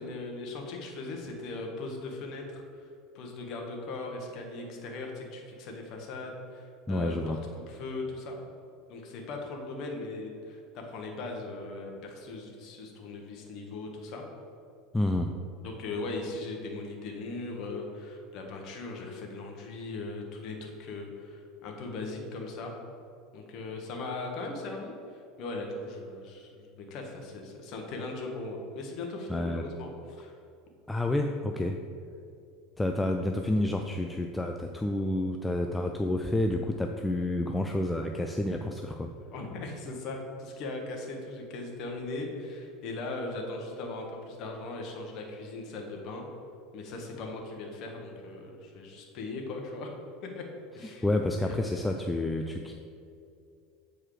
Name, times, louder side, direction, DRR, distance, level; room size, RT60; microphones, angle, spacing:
voice 1, 0.0-2.6 3.1-7.4 7.7-8.4 8.9-14.2 15.6-22.8 23.3-30.4 39.3-46.3 46.7-49.9 50.2-50.4 50.7-51.0 51.4-52.0, left 2 dB, 45° left, 1 dB, 1.3 m, -39 dB
voice 2, 6.9-7.4 14.9-15.3 29.3-29.6 30.9-31.8 32.8-39.1 51.0-52.7, left 1 dB, 5° left, 3 dB, 0.3 m, -29 dB
7.5 x 4.7 x 4.9 m, 2.5 s
supercardioid pair, 145°, 0 cm